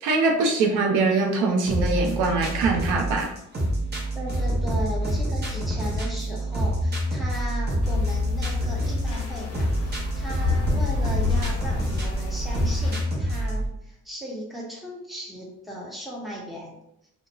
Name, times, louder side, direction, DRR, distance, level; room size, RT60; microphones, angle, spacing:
voice 1, 0.0-3.3, right 3 dB, 90° right, 1 dB, 0.6 m, -22 dB
sound 1, 1.7-13.7, right 1 dB, 35° right, 0.8 m, -27 dB
voice 2, 4.1-16.8, equal, ahead, -4 dB, 0.8 m, -36 dB
sound 2, 7.8-12.9, left 4 dB, 50° left, 0.6 m, -28 dB
2.3 x 2.1 x 3.0 m, 0.79 s
cardioid pair, 90°, 30 cm